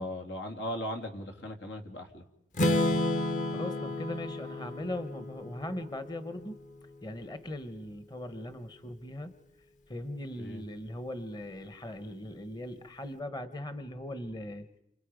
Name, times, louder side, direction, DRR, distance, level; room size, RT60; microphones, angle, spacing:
voice 1, 0.0-2.2 10.4-10.6, left 1 dB, 85° left, 4 dB, 2.9 m, -38 dB
Strum, 2.5-6.5, left 1 dB, 45° left, 1.4 m, -31 dB
voice 2, 3.5-6.6 7.0-9.3 9.9-14.7, left 1 dB, 25° left, 10 dB, 1.1 m, -39 dB
29.0 x 27.0 x 5.2 m, 0.80 s
head